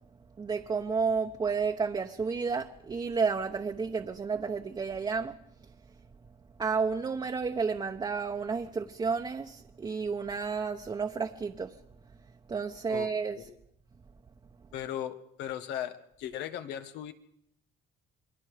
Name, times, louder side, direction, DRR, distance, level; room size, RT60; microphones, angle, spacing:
voice 1, 0.4-5.4 6.6-11.8 12.5-13.4, right 5 dB, 25° right, 1.0 m, -31 dB
voice 2, 14.7-17.1, left 10 dB, 90° left, 1.6 m, -37 dB
27.5 x 21.0 x 5.1 m
cardioid pair, 110°, 17 cm